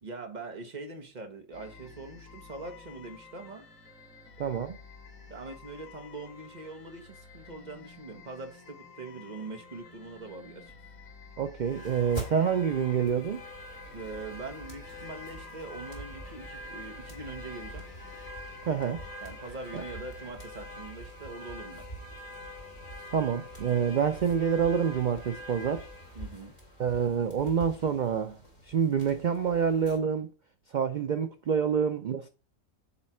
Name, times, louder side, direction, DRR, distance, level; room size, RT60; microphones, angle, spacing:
voice 1, 0.0-3.6 5.3-10.7 13.9-17.8 19.2-21.8 26.1-26.5, right 3 dB, 35° right, 1.1 m, -42 dB
sound 1, 1.5-20.3, left 5 dB, 90° left, 1.5 m, -51 dB
voice 2, 4.4-4.8 11.4-13.4 18.7-19.0 23.1-25.9 26.8-28.4 28.7-30.3 30.7-32.3, right 7 dB, 70° right, 0.4 m, -27 dB
sound 2, 11.6-30.0, equal, 30° left, 2.3 m, -44 dB
8.3 x 3.2 x 4.3 m
omnidirectional pair, 1.4 m